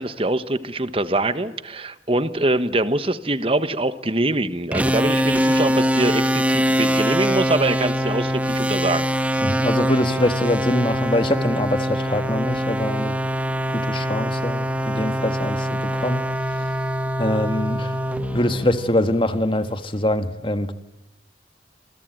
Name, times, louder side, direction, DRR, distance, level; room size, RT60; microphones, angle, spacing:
voice 1, 0.0-9.0, right 2 dB, 30° right, 1.4 m, -23 dB
sound 1, 4.7-19.3, equal, 10° right, 1.4 m, -23 dB
voice 2, 9.4-13.2 13.7-16.2 17.2-18.0 18.3-20.7, left 1 dB, 30° left, 1.6 m, -23 dB
28.0 x 23.0 x 9.1 m
head